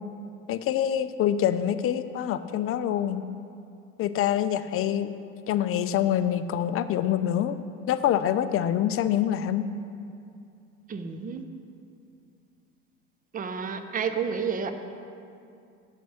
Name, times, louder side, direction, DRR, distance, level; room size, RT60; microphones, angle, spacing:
voice 1, 0.5-3.2 4.0-5.1 5.5-7.6 7.9-9.6, left 10 dB, 35° left, 12 dB, 0.5 m, -25 dB
voice 2, 10.9-11.5 13.3-14.7, right 6 dB, 20° right, 8 dB, 0.7 m, -30 dB
9.4 x 6.1 x 6.0 m, 2.5 s
hypercardioid pair, 75°, 39 cm